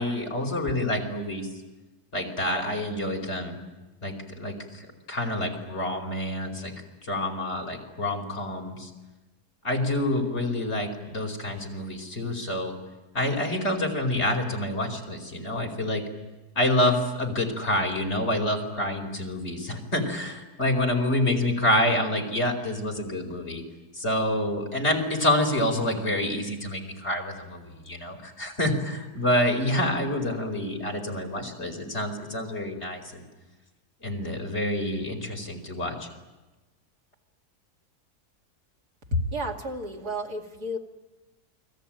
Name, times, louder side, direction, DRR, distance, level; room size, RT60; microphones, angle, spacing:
voice 1, 0.0-1.5 2.1-3.6 4.0-6.7 7.0-8.9 9.6-12.7 13.1-16.0 16.6-23.6 23.9-33.3 34.0-36.1, left 1 dB, 45° left, 1 dB, 5.1 m, -27 dB
voice 2, 39.1-40.8, left 1 dB, 85° right, 1 dB, 3.1 m, -30 dB
29.5 x 21.5 x 9.0 m, 1.1 s
omnidirectional pair, 1.7 m